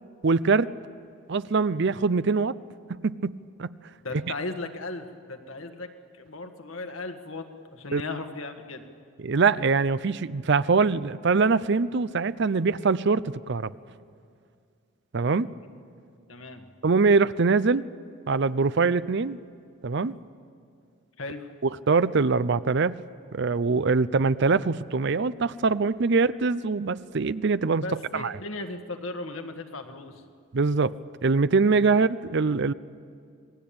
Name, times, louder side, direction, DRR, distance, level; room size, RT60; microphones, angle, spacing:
voice 1, 0.2-0.7 1.3-2.6 2.9-3.7 7.9-8.0 9.2-13.7 15.1-15.5 16.8-17.8 18.3-19.4 19.8-20.1 21.6-23.0 23.3-27.8 28.1-28.3 30.5-31.0 31.2-32.7, right 4 dB, 55° right, 16 dB, 0.5 m, -23 dB
voice 2, 4.0-5.9 6.1-7.5 7.7-8.9 16.3-16.7 21.2-21.5 27.8-30.2, left 2 dB, 70° left, 5 dB, 1.7 m, -36 dB
27.5 x 20.0 x 8.8 m, 2.3 s
head